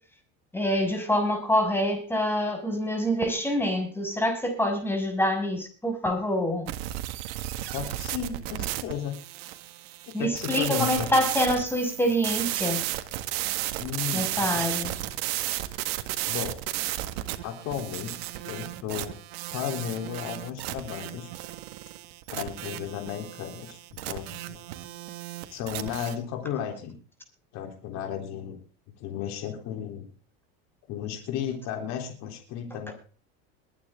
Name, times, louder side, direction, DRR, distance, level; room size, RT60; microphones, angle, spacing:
voice 1, 0.5-6.7 10.1-12.8 14.1-14.9 32.9-33.0, equal, 5° left, 6.1 m, -26 dB
sound 1, 6.7-26.2, right 15 dB, 80° right, 1.8 m, -34 dB
voice 2, 7.7-9.2 10.1-11.2 13.8-14.7 16.3-16.6 17.4-18.1 18.4-19.2 19.5-21.3 22.3-24.6 25.5-26.9 27.5-28.6 29.0-30.1 30.9-32.9, left 9 dB, 60° left, 3.6 m, -34 dB
22.0 x 9.7 x 3.7 m
supercardioid pair, 115°, 31 cm